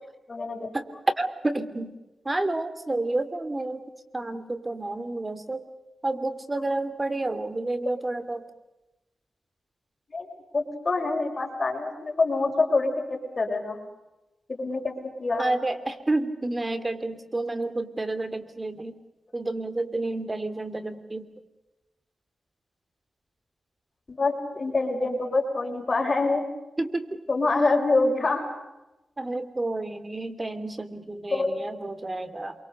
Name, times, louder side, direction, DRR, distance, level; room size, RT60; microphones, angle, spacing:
voice 1, 0.3-0.7 10.1-10.3 10.5-13.8 14.5-14.9 15.2-15.5 24.1-26.4 27.3-28.5 31.3-31.7, left 3 dB, 40° left, 3 dB, 6.0 m, -25 dB
voice 2, 1.2-1.9 2.2-3.9 4.1-5.7 6.0-8.4 15.4-19.0 19.3-21.3 26.8-27.2 29.2-32.6, right 2 dB, 25° right, 11 dB, 2.8 m, -30 dB
27.5 x 24.5 x 6.8 m, 0.98 s
cardioid pair, 80°, 0 cm